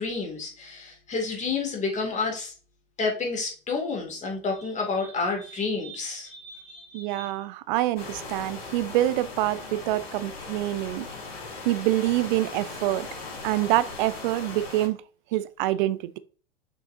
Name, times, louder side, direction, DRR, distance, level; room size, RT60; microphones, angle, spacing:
voice 1, 0.0-2.5 3.0-7.3, left 4 dB, 25° left, 2.5 m, -30 dB
voice 2, 6.9-11.1 11.6-13.1 13.4-15.0 15.3-16.2, right 15 dB, 55° right, 0.6 m, -26 dB
sound 1, 8.0-14.9, left 3 dB, 80° left, 3.7 m, -39 dB
6.4 x 6.1 x 2.7 m
hypercardioid pair, 95°, 30 cm